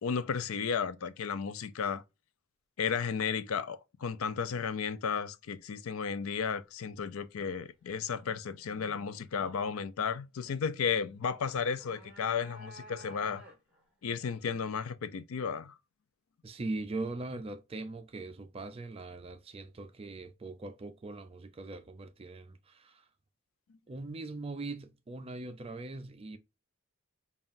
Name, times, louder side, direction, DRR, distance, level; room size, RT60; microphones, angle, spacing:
voice 1, 0.0-2.0 2.8-13.4 14.0-15.7, left 6 dB, 85° left, 0.4 m, -33 dB
sound 1, 11.5-13.9, equal, 5° right, 1.5 m, -52 dB
voice 2, 16.4-23.0 23.9-26.4, right 2 dB, 30° right, 0.4 m, -41 dB
5.5 x 2.4 x 2.5 m
head